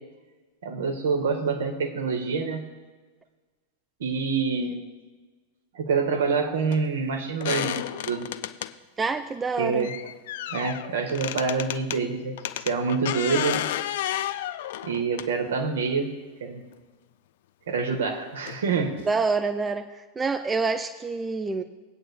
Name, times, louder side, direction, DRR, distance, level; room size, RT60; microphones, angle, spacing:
voice 1, 0.6-2.6 4.0-4.8 5.7-8.3 9.6-9.9 10.5-13.6 14.8-16.1 16.4-16.6 17.7-19.0, right 5 dB, 60° right, 3 dB, 1.6 m, -26 dB
sound 1, 6.7-6.8 7.4-8.7 9.8-12.0 12.4-15.6 16.7-16.8 18.4-18.6 19.0-19.1 19.4-19.5, left 12 dB, 55° left, 0.4 m, -32 dB
voice 2, 9.0-9.9 19.1-21.6, right 4 dB, 15° right, 9 dB, 0.5 m, -27 dB
21.0 x 9.0 x 2.2 m, 1.4 s
figure-of-eight pair, 90°, 0 cm